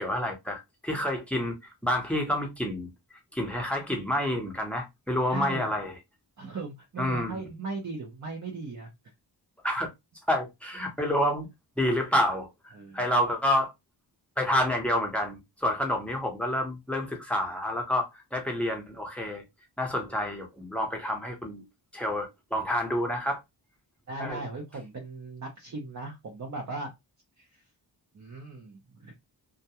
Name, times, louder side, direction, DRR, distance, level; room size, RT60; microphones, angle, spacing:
voice 1, 0.0-1.6 1.8-2.9 3.3-5.9 7.0-7.4 9.6-9.9 10.3-11.5 11.8-12.5 12.9-13.7 14.4-19.4 19.8-21.6 21.9-23.4 24.2-24.4, left 1 dB, 5° left, 0.8 m, -28 dB
voice 2, 5.3-5.7 6.4-8.9 11.0-11.1 12.7-13.1 24.1-26.9 27.4-27.6 28.1-29.1, right 3 dB, 40° right, 0.6 m, -38 dB
2.3 x 2.2 x 2.8 m
wide cardioid pair, 105°, 44 cm